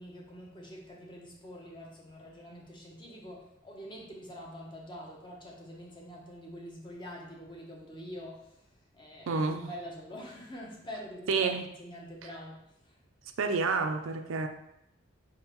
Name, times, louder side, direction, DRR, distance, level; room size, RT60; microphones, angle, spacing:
voice 1, 0.0-8.6 8.9-13.0, equal, 25° left, -1 dB, 0.8 m, -45 dB
voice 2, 9.3-9.7 11.3-11.7 13.4-14.5, right 4 dB, 80° right, 6 dB, 0.5 m, -29 dB
4.5 x 3.6 x 3.0 m, 0.82 s
head